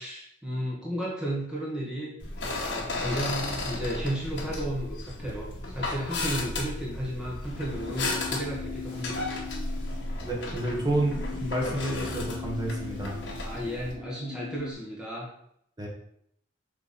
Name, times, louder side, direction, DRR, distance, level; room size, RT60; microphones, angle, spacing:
voice 1, 0.0-2.1 2.6-9.3 13.4-15.3, equal, 5° right, -5 dB, 1.5 m, -33 dB
sound 1, 2.2-13.9, left 2 dB, 65° left, 1.8 m, -34 dB
sound 2, 7.5-14.7, left 6 dB, 40° right, 1.2 m, -40 dB
voice 2, 10.2-13.2 15.8-15.9, right 1 dB, 20° right, -1 dB, 1.5 m, -30 dB
6.5 x 3.5 x 5.4 m, 0.70 s
head